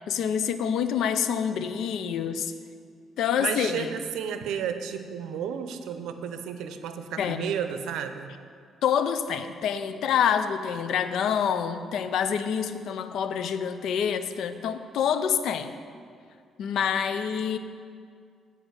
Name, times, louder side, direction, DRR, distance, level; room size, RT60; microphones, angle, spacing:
voice 1, 0.1-2.5 3.2-3.9 7.2-7.5 8.8-15.7 16.6-17.6, left 8 dB, 75° left, 10 dB, 0.5 m, -27 dB
voice 2, 3.4-8.3, right 8 dB, 90° right, 8 dB, 0.6 m, -32 dB
9.1 x 5.0 x 7.8 m, 2.2 s
cardioid pair, 90°, 0 cm